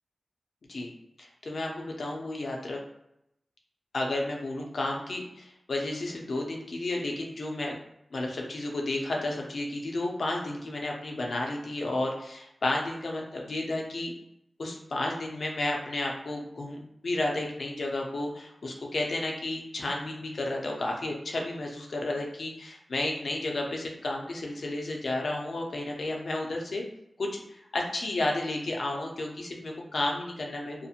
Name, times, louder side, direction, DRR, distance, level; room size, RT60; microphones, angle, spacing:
voice 1, 1.2-2.8 3.9-7.8 8.1-14.1 14.6-26.8 27.2-30.9, left 2 dB, 70° left, 0 dB, 0.5 m, -32 dB
2.4 x 2.1 x 2.8 m, 0.80 s
wide cardioid pair, 80°, 0 cm